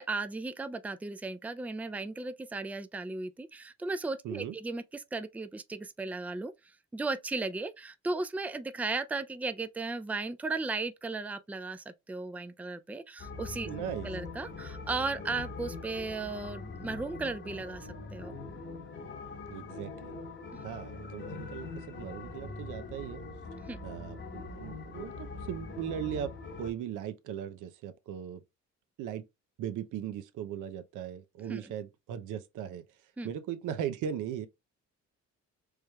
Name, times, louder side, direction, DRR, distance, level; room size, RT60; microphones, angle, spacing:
voice 1, 0.0-6.5 6.9-13.7 14.0-18.3 23.7-23.8 31.5-31.6 33.2-33.3, right 3 dB, 5° right, 0.4 m, -36 dB
voice 2, 4.2-4.5 13.7-14.1 19.5-20.2 20.6-23.2 23.8-26.3 26.6-28.4 29.0-29.2 29.6-32.8 33.2-34.5, right 9 dB, 85° right, 0.7 m, -38 dB
sound 1, 13.2-26.7, left 3 dB, 40° left, 1.0 m, -42 dB
4.7 x 3.2 x 2.3 m
cardioid pair, 90°, 30 cm